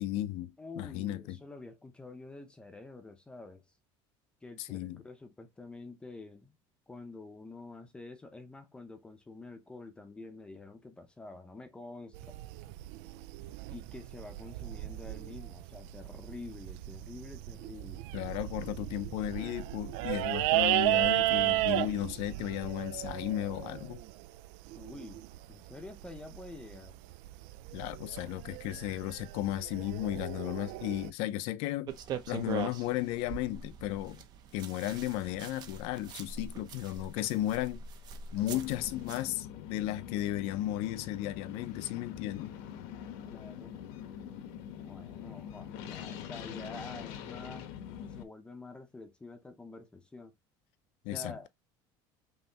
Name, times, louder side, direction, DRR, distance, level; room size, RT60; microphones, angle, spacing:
voice 1, 0.0-1.4 4.6-5.0 18.1-24.0 27.7-31.9 32.3-34.2 34.5-37.8 38.3-42.6 51.0-51.5, left 14 dB, 65° left, 0.6 m, -34 dB
voice 2, 0.6-3.7 4.4-6.6 6.9-12.4 13.7-18.0 24.8-27.0 43.3-43.8 44.8-50.3 51.1-51.5, left 3 dB, 10° left, 0.6 m, -48 dB
sound 1, 12.1-31.1, right 17 dB, 70° right, 0.4 m, -34 dB
sound 2, 31.9-39.2, right 7 dB, 40° right, 0.8 m, -43 dB
sound 3, 38.4-48.2, left 9 dB, 80° left, 1.1 m, -44 dB
5.6 x 3.1 x 2.9 m
cardioid pair, 170°, 11 cm